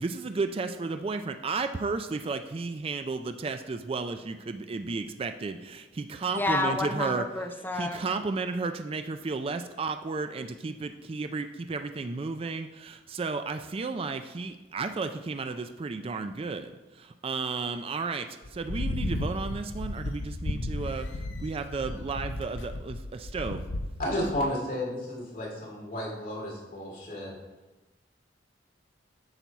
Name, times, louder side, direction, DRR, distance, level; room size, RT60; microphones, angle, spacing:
voice 1, 0.0-7.2 7.7-21.1 21.4-23.6, right 4 dB, 30° right, 8 dB, 0.3 m, -33 dB
voice 2, 6.3-8.0, left 2 dB, 10° left, 3 dB, 0.6 m, -29 dB
sound 1, 18.4-24.4, left 1 dB, 75° left, 0.6 m, -34 dB
voice 3, 24.0-27.4, left 1 dB, 50° left, -3 dB, 2.4 m, -32 dB
8.9 x 5.9 x 4.0 m, 1.1 s
head